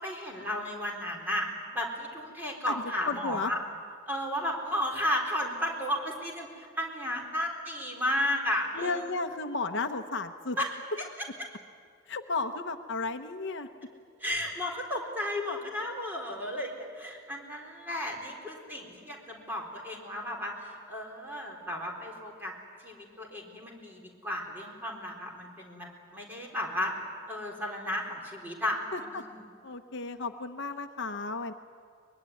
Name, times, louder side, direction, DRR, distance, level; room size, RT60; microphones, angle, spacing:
voice 1, 0.0-1.5 1.7-3.6 4.1-9.1 10.6-10.7 11.2-11.3 14.2-22.5 22.8-26.9 27.3-29.3, left 1 dB, 10° right, 0 dB, 4.1 m, -33 dB
voice 2, 3.1-3.5 8.7-10.6 12.1-13.7 28.9-29.2 29.6-31.5, left 3 dB, 60° left, 7 dB, 0.9 m, -33 dB
24.0 x 21.5 x 9.6 m, 2.2 s
head